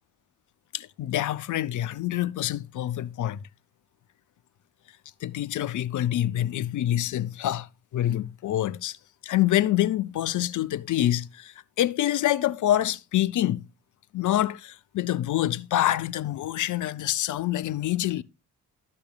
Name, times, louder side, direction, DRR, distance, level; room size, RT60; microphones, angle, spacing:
voice 1, 0.7-3.4 5.2-7.7 7.9-9.0 9.2-13.6 14.1-18.2, left 13 dB, 40° left, 0.6 m, -26 dB
11.5 x 7.1 x 2.4 m
hypercardioid pair, 45°, 46 cm